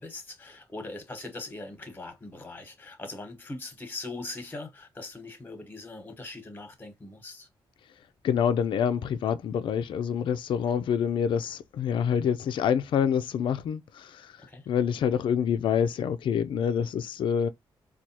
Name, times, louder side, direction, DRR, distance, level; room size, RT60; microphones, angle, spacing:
voice 1, 0.0-7.5 14.4-14.7, left 2 dB, 20° left, 1.0 m, -41 dB
voice 2, 8.2-14.3 14.7-17.5, left 8 dB, 70° left, 0.4 m, -26 dB
4.5 x 2.3 x 2.8 m
wide cardioid pair, 135°, 9 cm